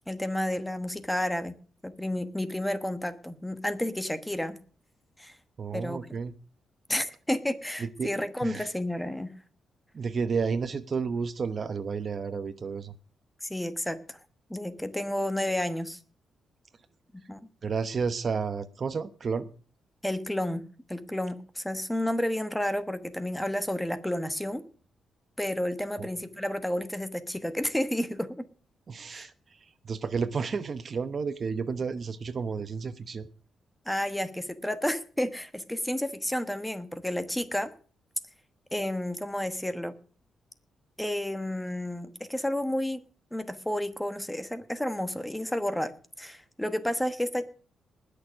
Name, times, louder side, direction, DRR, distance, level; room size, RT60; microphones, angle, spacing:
voice 1, 0.1-1.6 1.8-4.6 5.2-5.4 5.7-6.1 6.9-9.3 13.4-14.2 14.5-16.0 17.3-17.4 20.0-24.6 25.4-28.4 29.1-29.3 33.9-37.7 38.7-39.9 41.0-43.0 43.3-45.9 46.2-47.5, left 1 dB, 5° left, 12 dB, 1.1 m, -31 dB
voice 2, 5.6-6.3 7.8-8.1 8.4-8.7 9.9-12.9 17.6-19.5 26.0-26.1 28.9-29.3 29.8-33.3, right 5 dB, 40° right, 13 dB, 0.8 m, -31 dB
20.0 x 6.8 x 6.2 m, 0.41 s
cardioid pair, 145°, 0 cm